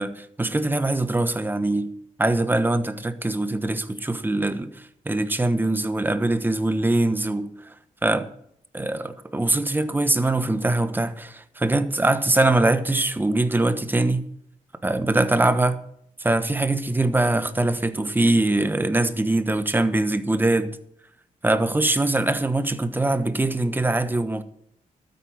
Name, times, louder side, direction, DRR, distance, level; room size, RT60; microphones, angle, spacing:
voice 1, 0.0-1.9 2.2-7.5 8.0-8.3 8.7-14.2 14.8-15.8 16.2-20.8 21.4-24.4, right 2 dB, 15° right, 1.1 m, -22 dB
12.5 x 9.5 x 6.2 m
cardioid pair, 95°, 14 cm